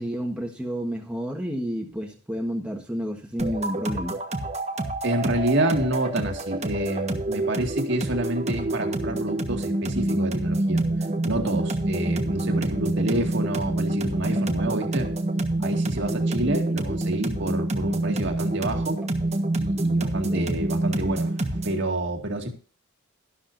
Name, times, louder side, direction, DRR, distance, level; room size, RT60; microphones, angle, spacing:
voice 1, 0.0-4.2 20.3-20.4, equal, 5° right, 0 dB, 1.4 m, -30 dB
sound 1, 3.4-21.8, right 2 dB, 30° right, 1.3 m, -27 dB
voice 2, 5.0-10.8 11.2-15.1 15.6-19.0 19.6-21.4 21.6-22.5, right 1 dB, 55° right, 3 dB, 2.1 m, -28 dB
12.5 x 12.0 x 2.6 m, 0.38 s
head